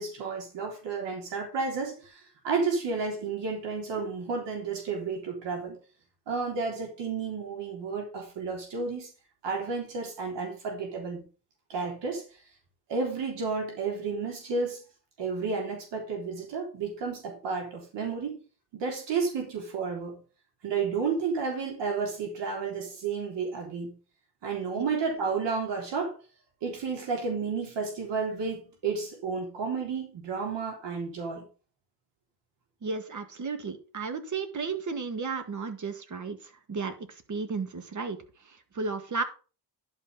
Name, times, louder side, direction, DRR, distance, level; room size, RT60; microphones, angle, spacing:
voice 1, 0.0-5.8 6.3-9.1 9.4-11.2 11.7-12.2 12.9-14.8 15.2-18.4 18.7-20.2 20.6-23.9 24.4-26.2 26.6-31.5, right 4 dB, 80° right, 1 dB, 3.6 m, -31 dB
voice 2, 32.8-39.2, right 4 dB, 45° right, 9 dB, 1.9 m, -34 dB
11.0 x 5.8 x 5.3 m, 0.35 s
cardioid pair, 105°, 42 cm